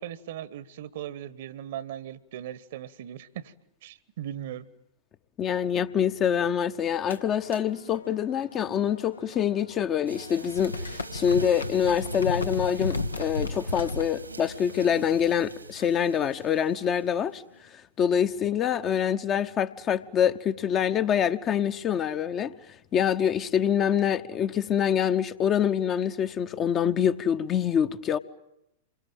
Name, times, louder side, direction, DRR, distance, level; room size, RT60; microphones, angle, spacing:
voice 1, 0.0-3.5 3.8-4.7, right 11 dB, 55° right, 1.2 m, -38 dB
voice 2, 5.4-17.4 18.0-22.5 22.9-28.2, left 8 dB, 30° left, 1.0 m, -25 dB
sound 1, 7.1-9.8 10.0-14.1, left 2 dB, 80° left, 1.1 m, -35 dB
sound 2, 10.1-17.6, right 2 dB, 85° right, 2.2 m, -44 dB
27.5 x 23.5 x 9.0 m
figure-of-eight pair, 95°, 0 cm